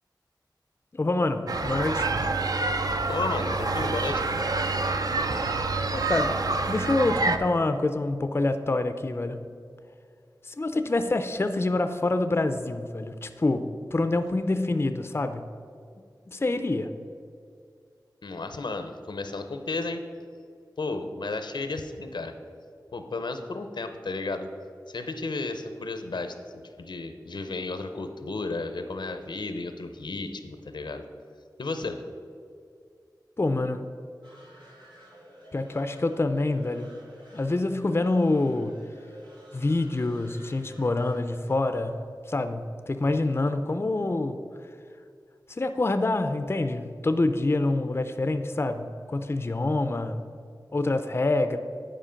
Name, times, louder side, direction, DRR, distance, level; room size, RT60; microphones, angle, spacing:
voice 1, 0.9-2.1 5.9-6.4 6.7-9.5 10.4-15.5 16.3-16.9 33.4-33.8 35.5-36.9 37.3-38.8 39.5-44.4 45.5-50.3 50.7-51.6, left 2 dB, 35° left, 9 dB, 0.4 m, -26 dB
sound 1, 1.5-7.4, right 3 dB, 55° right, 0.5 m, -27 dB
voice 2, 3.1-4.2 18.2-20.0 20.8-22.3 22.9-24.5 24.9-31.0 31.6-32.0, left 3 dB, 85° left, 7 dB, 0.7 m, -33 dB
sound 2, 34.2-42.6, equal, 90° right, 1.7 m, -51 dB
9.9 x 5.1 x 5.1 m, 2.3 s
wide cardioid pair, 75°, 8 cm